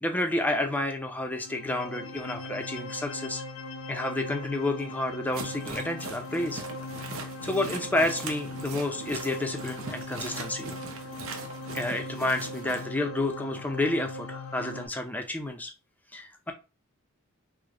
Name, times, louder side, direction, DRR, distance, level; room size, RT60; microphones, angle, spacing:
voice 1, 0.0-3.4 3.9-6.6 7.2-10.7 11.7-15.7 16.1-16.5, left 1 dB, 10° left, 0.4 m, -30 dB
sound 1, 1.3-14.9, left 2 dB, 80° left, 0.5 m, -40 dB
sound 2, 5.3-12.9, right 3 dB, 70° right, 0.7 m, -41 dB
3.3 x 2.0 x 3.6 m
head